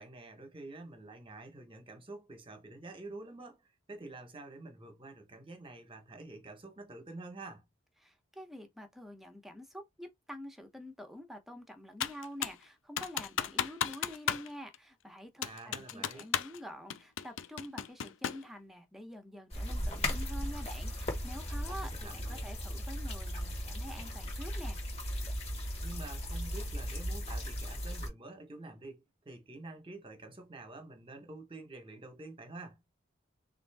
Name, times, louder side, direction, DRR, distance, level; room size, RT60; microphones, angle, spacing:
voice 1, 0.0-7.6 15.4-16.3 21.7-22.5 25.8-32.8, right 2 dB, 30° right, 1.0 m, -48 dB
voice 2, 8.0-24.8, equal, ahead, 0.8 m, -47 dB
Computer keyboard, 12.0-12.6 13.0-14.5 14.7-14.8 15.4-16.6 16.9-18.5, left 9 dB, 80° left, 0.5 m, -34 dB
sound 1, 19.5-28.1, equal, 35° left, 1.4 m, -37 dB
3.7 x 2.5 x 3.4 m
head